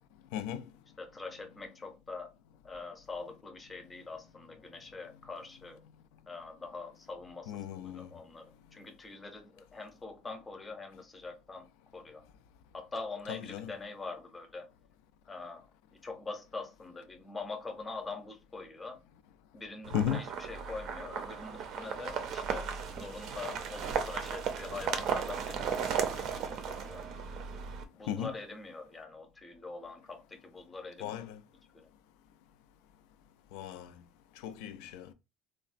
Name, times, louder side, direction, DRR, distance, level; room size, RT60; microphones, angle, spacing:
voice 1, 0.3-0.7 7.5-8.1 13.3-13.7 19.9-20.2 28.1-28.3 31.0-31.4 33.5-33.9 34.4-35.1, left 10 dB, 90° left, 0.4 m, -36 dB
voice 2, 1.0-2.3 2.6-5.8 6.3-11.7 11.9-12.2 12.7-14.6 15.3-19.0 19.5-25.8 26.1-27.1 27.9-31.2 31.7-31.9, left 3 dB, 15° left, 0.6 m, -44 dB
sound 1, 19.8-27.8, right 7 dB, 45° right, 0.5 m, -36 dB
3.8 x 2.1 x 2.5 m
cardioid pair, 170°, 0 cm